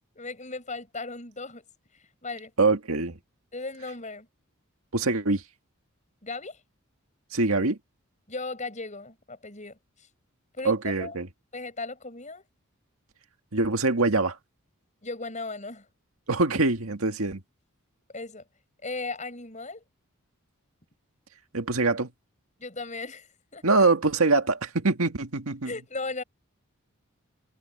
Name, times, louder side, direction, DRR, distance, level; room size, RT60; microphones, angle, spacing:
voice 1, 0.1-1.6 1.9-2.5 3.5-4.3 6.2-6.6 8.3-10.1 10.5-11.2 11.5-12.4 15.0-15.9 18.1-18.4 18.8-19.8 22.6-23.6 25.6-26.2, left 3 dB, 35° left, 7.7 m, -37 dB
voice 2, 2.6-3.2 4.9-5.4 7.3-7.8 10.7-11.3 13.5-14.4 16.3-17.4 21.5-22.1 23.6-25.7, right 3 dB, 75° right, 1.8 m, -24 dB
head